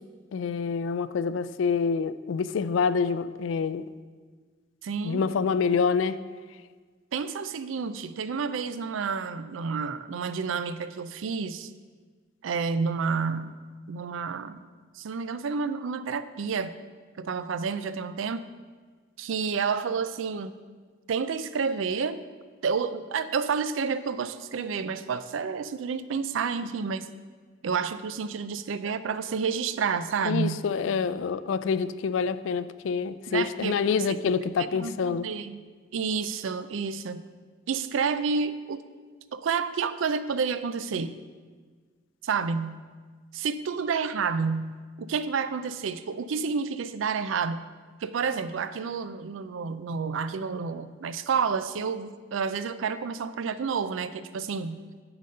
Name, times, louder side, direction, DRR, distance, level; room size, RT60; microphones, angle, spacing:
voice 1, 0.3-3.8 5.0-6.2 30.2-35.3, left 5 dB, 75° left, 14 dB, 0.3 m, -27 dB
voice 2, 4.8-5.3 7.1-11.7 12.4-13.6 13.9-14.6 15.0-16.7 17.2-18.4 19.2-20.5 21.1-22.2 22.6-27.1 27.6-30.6 33.3-34.2 34.7-35.6 35.9-37.2 37.7-38.8 39.3-41.2 42.2-42.8 43.3-47.6 48.0-54.8, right 5 dB, 80° right, 13 dB, 0.4 m, -30 dB
10.0 x 4.0 x 5.3 m, 1.5 s
head